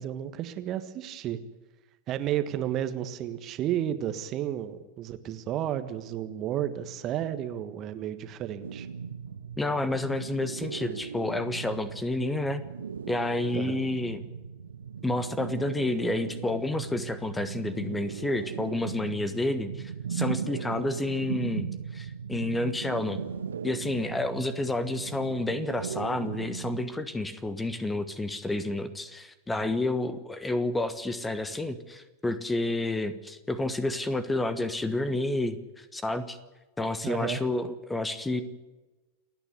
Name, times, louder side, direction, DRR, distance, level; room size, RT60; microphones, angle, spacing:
voice 1, 0.0-1.4 2.1-8.9 13.5-13.8 37.0-37.4, right 11 dB, 35° right, 11 dB, 1.5 m, -32 dB
sound 1, 8.6-26.9, right 6 dB, 70° right, 0.8 m, -37 dB
voice 2, 9.6-12.6 13.1-14.2 15.0-23.2 23.6-36.4 36.8-38.4, left 2 dB, 10° left, 13 dB, 1.4 m, -30 dB
29.0 x 10.0 x 9.5 m, 1.2 s
figure-of-eight pair, 90°, 0 cm